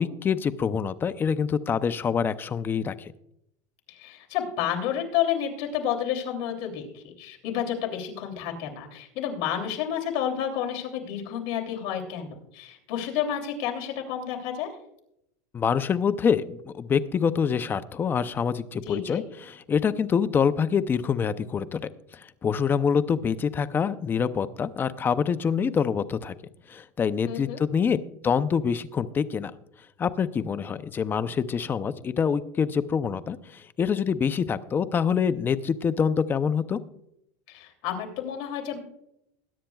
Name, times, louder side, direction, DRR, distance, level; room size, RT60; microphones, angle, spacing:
voice 1, 0.0-3.1 15.5-26.3 26.7-28.0 28.2-29.5 30.0-36.8, left 6 dB, 20° left, 13 dB, 0.6 m, -26 dB
voice 2, 3.9-14.7 18.8-19.2 27.2-27.6 37.5-38.8, left 9 dB, 55° left, 1 dB, 2.9 m, -30 dB
21.0 x 10.0 x 2.3 m, 0.78 s
supercardioid pair, 135°, 10 cm